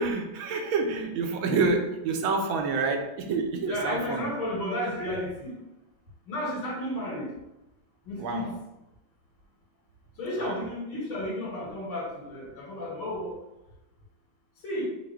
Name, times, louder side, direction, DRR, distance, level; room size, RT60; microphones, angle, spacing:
voice 1, 0.0-4.3 8.2-8.5 10.4-10.5, right 4 dB, 85° right, 4 dB, 1.4 m, -28 dB
voice 2, 3.7-5.6 6.3-7.3 8.1-8.5 10.2-13.4 14.6-14.9, left 1 dB, 80° left, -4 dB, 2.4 m, -32 dB
5.9 x 2.5 x 3.5 m, 0.95 s
omnidirectional pair, 2.2 m